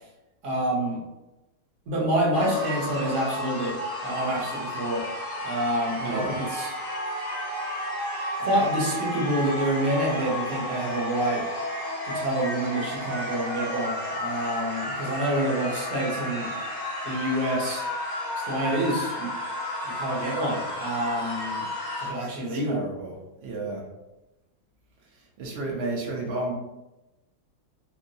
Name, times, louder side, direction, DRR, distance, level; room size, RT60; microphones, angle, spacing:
voice 1, 0.4-1.0 1.9-5.1 5.4-6.7 8.4-11.5 12.0-16.5 17.0-17.9 18.4-19.3 19.8-21.7 22.0-22.8, right 1 dB, 55° right, -3 dB, 0.9 m, -27 dB
sound 1, 2.3-22.1, left 1 dB, 50° left, 0.5 m, -32 dB
voice 2, 6.0-6.3 22.1-23.1 23.4-23.8 25.4-26.5, right 2 dB, 80° right, -2 dB, 0.5 m, -32 dB
3.0 x 2.9 x 2.6 m, 1.0 s
omnidirectional pair, 2.0 m